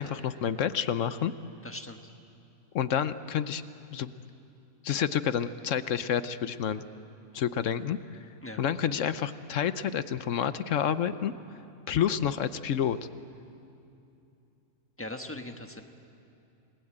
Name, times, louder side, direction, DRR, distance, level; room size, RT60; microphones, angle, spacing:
voice 1, 0.0-1.3 2.7-3.6 3.9-4.1 4.8-6.8 7.3-8.0 8.6-11.3 11.9-13.0, left 9 dB, 65° left, 13 dB, 1.1 m, -29 dB
voice 2, 1.6-2.0 8.4-8.6 15.0-15.8, left 1 dB, 10° left, 5 dB, 1.3 m, -40 dB
29.0 x 20.0 x 8.8 m, 2.7 s
omnidirectional pair, 1.4 m